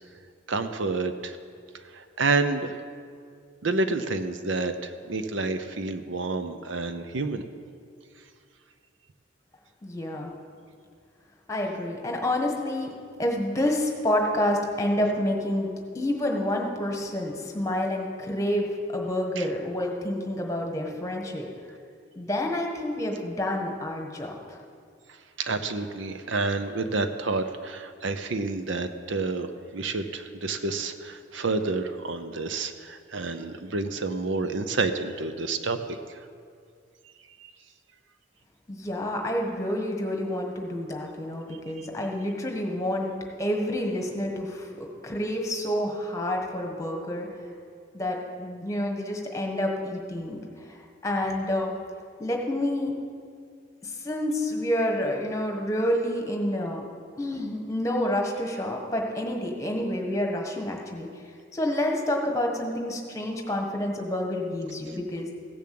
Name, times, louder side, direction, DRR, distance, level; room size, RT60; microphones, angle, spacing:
voice 1, 0.5-1.4 1.9-2.8 3.6-7.4 19.4-19.5 25.4-35.8 36.1-36.3 37.4-37.5 41.8-41.9, right 3 dB, 70° right, 9 dB, 0.7 m, -29 dB
voice 2, 9.8-10.3 11.5-12.9 13.2-21.5 22.2-24.6 38.7-43.1 43.4-47.3 47.9-50.8 51.0-51.7 52.2-53.0 53.8-56.8 57.2-61.1 61.5-65.3, left 1 dB, 15° left, 1 dB, 1.4 m, -28 dB
15.5 x 7.2 x 7.7 m, 2.2 s
head